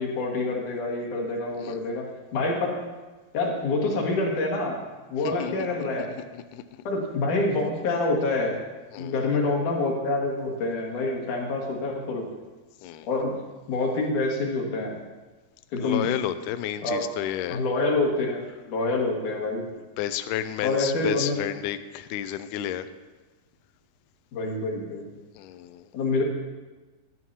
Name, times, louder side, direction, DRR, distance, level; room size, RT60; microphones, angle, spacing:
voice 1, 0.0-2.0 2.3-2.8 3.3-4.8 5.1-6.1 6.8-8.6 9.0-12.3 13.1-13.3 13.7-14.9 15.7-16.1 16.8-17.0 17.5-19.7 20.6-21.3 24.3-25.0 25.9-26.2, left 2 dB, 65° left, -1 dB, 3.2 m, -26 dB
voice 2, 8.9-9.3 12.8-13.1 15.8-17.6 20.0-22.9 25.4-25.9, left 11 dB, 80° left, 11 dB, 1.9 m, -31 dB
15.5 x 11.0 x 2.9 m, 1.2 s
omnidirectional pair, 4.0 m